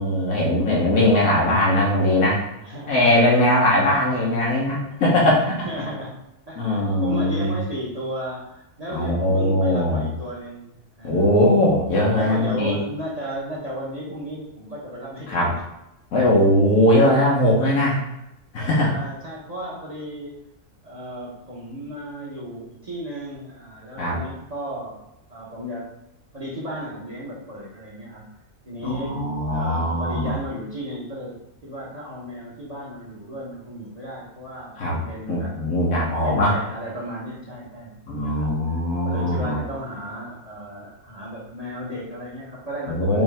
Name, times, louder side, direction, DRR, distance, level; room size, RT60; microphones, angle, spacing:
voice 1, 0.0-2.4 2.9-5.7 6.6-7.5 8.9-10.1 11.0-12.7 15.3-15.5 16.1-18.0 18.5-18.9 24.0-24.2 28.8-30.3 34.8-35.0 35.3-36.6 38.1-39.6 42.9-43.2, left 1 dB, 90° left, -4 dB, 1.6 m, -20 dB
voice 2, 2.6-3.2 5.7-6.2 6.5-11.3 12.1-15.6 18.8-20.4 20.8-25.0 25.3-25.9 26.3-28.3 28.6-35.5 36.1-38.5 39.0-43.2, equal, 30° right, -5 dB, 1.0 m, -34 dB
5.4 x 2.8 x 3.4 m, 0.88 s
omnidirectional pair, 1.4 m